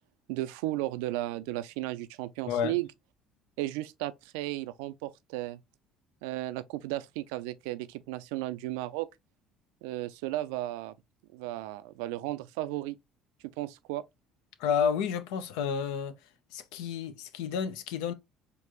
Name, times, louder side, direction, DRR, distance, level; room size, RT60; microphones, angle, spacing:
voice 1, 0.3-2.9 3.6-5.6 6.2-9.1 9.8-10.9 11.3-13.0 13.6-14.0, right 16 dB, 85° right, 0.3 m, -34 dB
voice 2, 14.6-16.2 16.5-18.1, left 7 dB, 80° left, 0.5 m, -30 dB
4.5 x 2.5 x 2.9 m
supercardioid pair, 85°, 0 cm